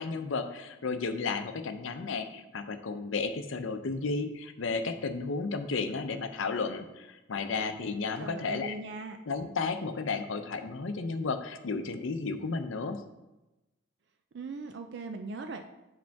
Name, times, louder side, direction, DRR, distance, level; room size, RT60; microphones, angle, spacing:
voice 1, 0.0-8.7 9.3-13.0, left 4 dB, 80° left, 8 dB, 0.6 m, -33 dB
voice 2, 8.2-9.2 14.3-15.7, right 3 dB, 60° right, 6 dB, 0.4 m, -39 dB
8.1 x 5.1 x 3.4 m, 1.0 s
head